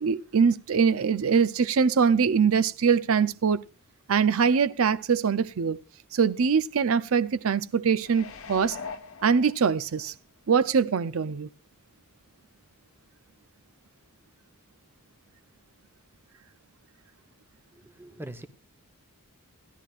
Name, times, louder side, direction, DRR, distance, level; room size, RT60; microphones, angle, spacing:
voice 1, 0.0-3.6 4.1-5.8 6.1-8.8 9.2-10.1 10.5-11.5, right 6 dB, 65° right, 0.5 m, -23 dB
sound 1, 8.0-10.1 10.6-10.7, left 5 dB, 65° left, 1.1 m, -41 dB
voice 2, 17.7-18.5, right 1 dB, 10° right, 0.8 m, -42 dB
18.0 x 11.5 x 2.5 m
head